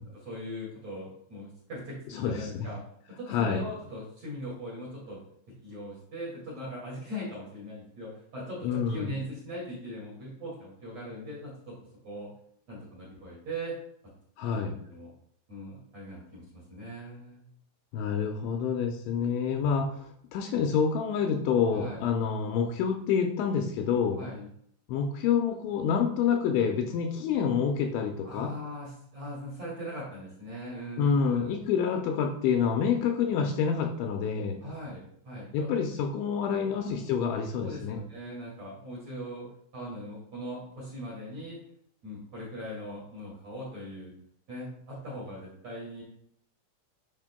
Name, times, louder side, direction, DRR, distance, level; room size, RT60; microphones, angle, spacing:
voice 1, 0.0-2.8 3.2-5.2 5.6-11.7 12.0-12.3 12.7-13.7 14.5-15.1 15.5-17.4 21.7-22.1 24.1-24.5 28.2-31.5 34.6-35.7 36.7-37.2 37.6-39.5 39.7-41.6 42.0-44.1 44.5-46.0, equal, 45° right, -5 dB, 2.6 m, -40 dB
voice 2, 2.2-2.7 3.3-3.6 8.6-9.1 14.4-14.7 17.9-19.9 20.3-24.2 24.9-28.5 31.0-34.6 35.5-38.0, left 6 dB, 80° left, 2 dB, 2.8 m, -27 dB
11.0 x 5.2 x 2.2 m, 0.67 s
omnidirectional pair, 5.6 m